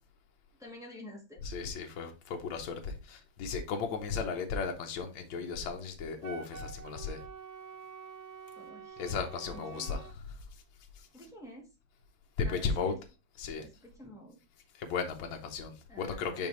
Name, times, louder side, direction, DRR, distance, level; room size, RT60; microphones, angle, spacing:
voice 1, 0.6-1.4 8.6-9.0 9.5-10.0 11.1-11.7 12.4-13.0 13.6-14.4 15.9-16.5, left 1 dB, ahead, 1.3 m, -49 dB
voice 2, 1.4-7.2 9.0-10.2 12.4-13.0 13.4-13.7 14.8-16.5, left 5 dB, 75° left, 1.7 m, -35 dB
Wind instrument woodwind instrument, 6.2-10.2, right 6 dB, 85° right, 0.6 m, -47 dB
5.5 x 5.3 x 3.2 m
omnidirectional pair, 2.3 m